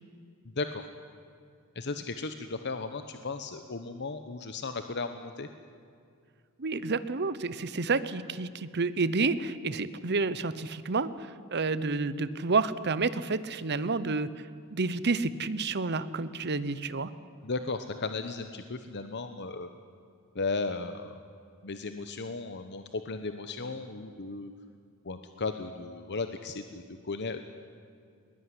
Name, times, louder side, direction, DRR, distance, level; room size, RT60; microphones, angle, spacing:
voice 1, 0.4-0.8 1.7-5.5 17.4-19.7 20.3-21.2 21.6-24.5 25.0-27.4, left 3 dB, 50° left, 8 dB, 1.0 m, -35 dB
voice 2, 6.6-14.3 14.7-17.1, right 3 dB, 50° right, 15 dB, 0.9 m, -29 dB
20.5 x 20.5 x 10.0 m, 2.3 s
head